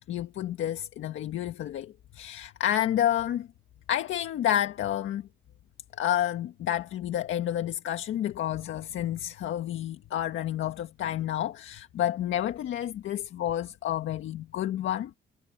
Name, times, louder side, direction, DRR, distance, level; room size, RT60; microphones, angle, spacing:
voice 1, 0.1-3.5 3.9-5.3 6.0-15.1, left 11 dB, 75° left, 1.7 m, -30 dB
cardioid pair, 90°, 20 cm